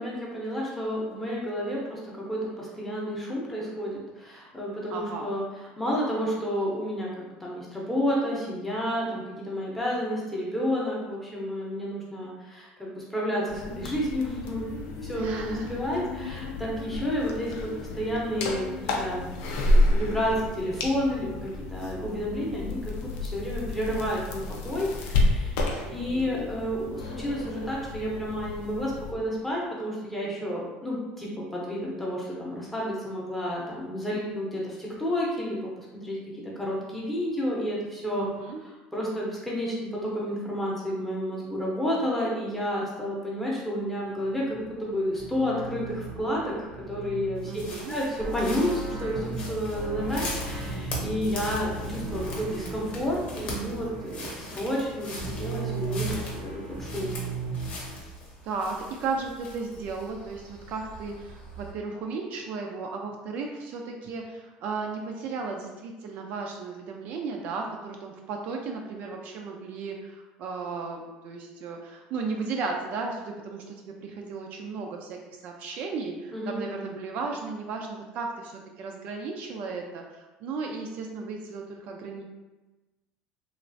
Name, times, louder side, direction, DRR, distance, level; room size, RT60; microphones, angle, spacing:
voice 1, 0.0-5.4 5.8-17.7 17.9-19.3 19.6-23.0 23.2-25.6 25.9-35.6 35.9-36.2 36.4-38.3 38.6-46.5 46.9-47.5 47.9-56.1 56.4-57.2 76.3-76.7, equal, 5° left, -5 dB, 0.7 m, -30 dB
voice 2, 4.9-5.3 15.2-15.7 25.8-26.5 38.2-38.6 47.4-48.0 58.4-75.2 75.4-82.2, right 4 dB, 55° right, 2 dB, 0.3 m, -35 dB
sound 1, 13.5-29.1, left 1 dB, 80° left, 0.5 m, -30 dB
sound 2, 44.1-58.0, right 3 dB, 85° right, 0.8 m, -36 dB
sound 3, 47.4-61.7, left 1 dB, 40° left, 0.8 m, -42 dB
3.1 x 2.3 x 2.6 m, 1.1 s
cardioid pair, 150°, 3 cm